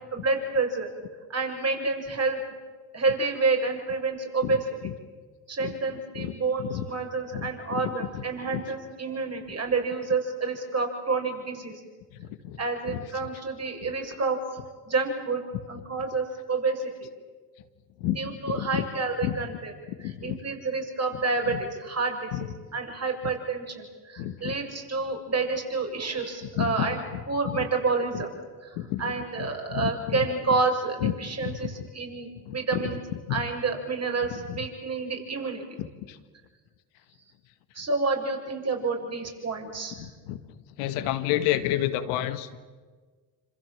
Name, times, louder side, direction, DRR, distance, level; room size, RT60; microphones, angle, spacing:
voice 1, 0.1-0.9 1.3-2.4 2.9-4.7 5.5-11.7 12.6-14.4 14.9-15.4 15.7-16.9 18.1-19.7 20.0-22.3 22.7-27.0 27.3-28.3 28.6-33.0 33.3-35.6 37.7-40.0, right 4 dB, 40° right, 3 dB, 7.3 m, -29 dB
voice 2, 7.3-7.8 12.2-12.6 12.9-13.0 18.0-18.2 18.5-18.8 19.2-19.3 20.0-20.4 21.5-21.6 22.3-22.5 24.2-24.6 26.6-27.0 27.5-27.6 28.8-29.0 29.4-30.2 31.0-31.1 31.4-31.6 32.5-32.8 33.3-33.4 34.5-34.6 36.1-36.2 40.0-40.4 40.8-42.6, left 13 dB, 80° left, 10 dB, 1.9 m, -30 dB
27.5 x 27.0 x 7.4 m, 1.4 s
hypercardioid pair, 60°, 41 cm